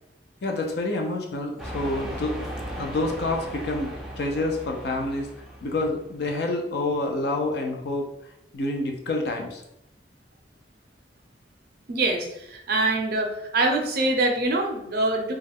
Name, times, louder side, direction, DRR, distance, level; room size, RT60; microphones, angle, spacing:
voice 1, 0.4-2.5 2.8-5.3 5.6-8.1 8.5-9.6, left 2 dB, 60° left, 2 dB, 0.5 m, -28 dB
sound 1, 1.6-6.1, equal, ahead, 0.4 m, -37 dB
voice 2, 11.9-15.3, right 2 dB, 55° right, 2 dB, 0.5 m, -24 dB
2.3 x 2.1 x 3.4 m, 0.82 s
head